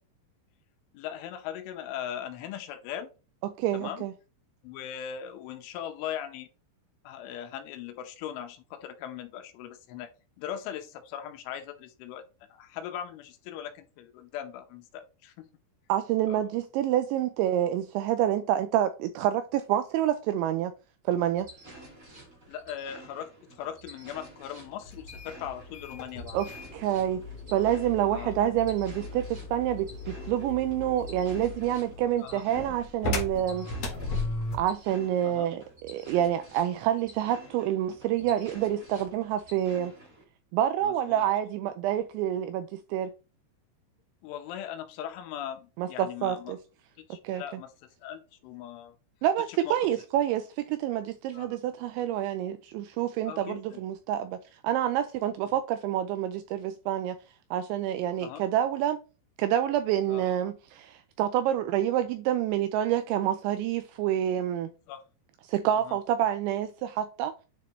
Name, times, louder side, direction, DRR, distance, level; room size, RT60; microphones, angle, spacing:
voice 1, 0.9-3.1 3.7-4.1 4.6-6.5 7.0-10.1 10.4-12.2 12.5-15.5 16.3-16.4 22.5-26.4 28.1-28.3 32.2-32.4 35.2-35.5 40.8-41.3 44.2-46.6 47.0-47.7 48.0-49.0 49.5-49.9 51.3-51.5 53.3-53.8 58.2-58.4 60.1-60.2 64.9-65.0 65.8-66.0, left 10 dB, 85° left, 3.2 m, -39 dB
voice 2, 3.4-4.1 15.9-20.7 21.1-21.5 26.3-27.2 27.5-33.7 34.5-39.9 40.5-43.1 45.8-46.6 47.2-47.4 49.2-57.2 57.5-59.0 59.4-64.7 65.5-67.5, right 11 dB, 85° right, 2.6 m, -28 dB
sound 1, 21.1-40.2, right 1 dB, 55° right, 0.9 m, -50 dB
sound 2, 24.8-34.8, left 2 dB, 65° left, 1.5 m, -37 dB
9.5 x 3.8 x 3.2 m
omnidirectional pair, 5.7 m